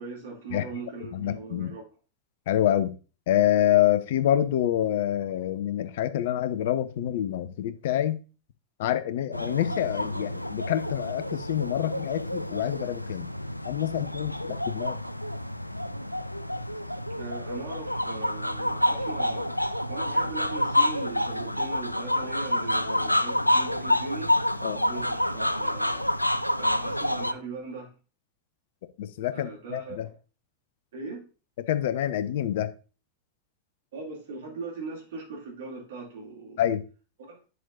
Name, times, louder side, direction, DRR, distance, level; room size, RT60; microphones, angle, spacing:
voice 1, 0.0-1.8 17.1-26.1 26.6-27.9 29.3-30.2 30.9-31.2 33.9-36.6 37.3-37.4, right 3 dB, 60° right, 2.6 m, -39 dB
voice 2, 1.1-1.7 2.5-2.9 3.3-8.2 8.8-13.3 13.7-15.0 24.6-24.8 29.0-30.1 31.7-32.7 36.6-36.8, left 11 dB, 55° left, 0.7 m, -26 dB
sound 1, 9.3-27.3, left 1 dB, 90° left, 0.4 m, -28 dB
8.1 x 7.6 x 2.6 m
figure-of-eight pair, 90°, 0 cm